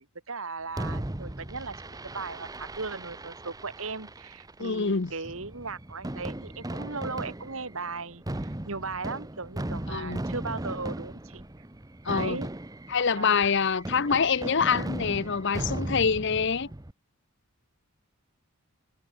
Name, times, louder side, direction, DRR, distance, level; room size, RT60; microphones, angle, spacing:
voice 1, 0.0-11.4 12.1-12.5 13.2-13.4, right 4 dB, 70° right, 2.2 m, -37 dB
Fireworks, 0.8-16.9, right 1 dB, 15° right, 0.9 m, -37 dB
voice 2, 4.6-5.1 9.9-10.2 12.0-12.4 12.9-16.7, left 5 dB, 55° left, 0.8 m, -25 dB
head